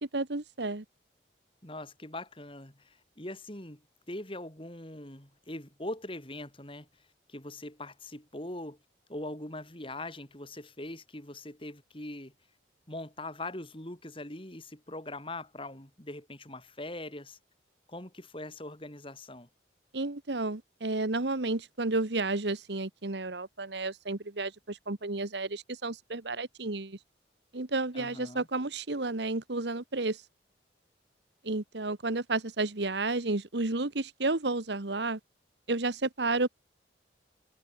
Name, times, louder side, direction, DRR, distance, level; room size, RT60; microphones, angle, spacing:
voice 1, 0.1-0.8 19.9-27.0 27.5-30.2 31.4-35.2 35.7-36.5, right 2 dB, 70° right, 1.4 m, -31 dB
voice 2, 1.6-3.8 4.1-6.9 7.3-8.8 9.1-12.3 12.9-17.4 17.9-19.5 27.9-28.5, left 1 dB, 30° left, 3.8 m, -42 dB
head